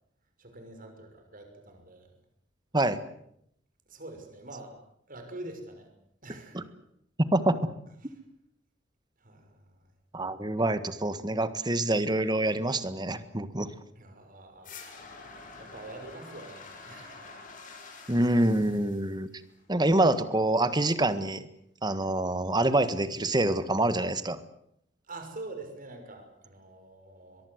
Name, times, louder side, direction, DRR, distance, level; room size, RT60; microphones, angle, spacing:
voice 1, 0.4-2.1 3.9-4.8 5.1-5.9 6.2-6.7 8.0-8.1 9.2-9.8 13.9-14.7 15.6-17.3 25.1-27.5, right 2 dB, 50° right, 5 dB, 6.2 m, -45 dB
voice 2, 10.1-13.7 18.1-19.3 19.7-21.4 21.8-24.4, right 1 dB, 25° right, 13 dB, 1.6 m, -26 dB
sound 1, 14.6-19.7, left 4 dB, 45° left, 6.0 m, -47 dB
23.0 x 22.5 x 8.1 m, 0.72 s
head